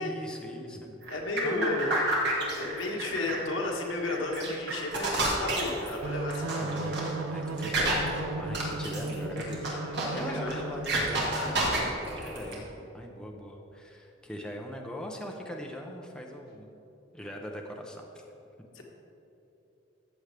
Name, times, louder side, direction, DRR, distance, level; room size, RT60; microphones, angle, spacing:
voice 1, 0.0-0.9 1.4-1.9 6.6-16.7 17.1-18.3, equal, 5° left, 0 dB, 0.7 m, -41 dB
sound 1, 1.0-12.5, right 1 dB, 60° right, 2.0 m, -31 dB
voice 2, 1.1-1.9 2.4-6.5 10.1-10.8 11.3-11.9 18.7-18.8, left 2 dB, 80° left, 0 dB, 1.6 m, -33 dB
sound 2, 6.0-11.5, right 2 dB, 85° right, 0.5 m, -36 dB
Telephone, 7.9-10.9 11.3-11.4, left 1 dB, 50° left, 0.7 m, -46 dB
14.0 x 7.9 x 3.4 m, 3.0 s
head